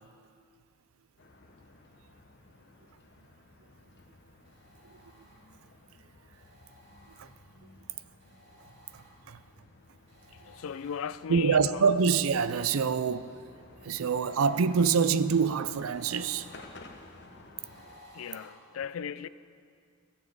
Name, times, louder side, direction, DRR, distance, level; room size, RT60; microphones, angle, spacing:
sound 1, 1.2-18.0, left 2 dB, 55° left, 1.0 m, -55 dB
sound 2, 4.5-5.7 6.3-7.7 8.2-9.5 10.1-11.4 11.9-18.5, equal, 55° right, 2.6 m, -57 dB
voice 1, 8.9-9.4 11.3-13.3 13.8-16.5, right 6 dB, 85° right, 0.5 m, -26 dB
voice 2, 10.3-11.8 18.1-19.3, left 7 dB, 75° left, 0.4 m, -37 dB
15.5 x 7.3 x 7.9 m
head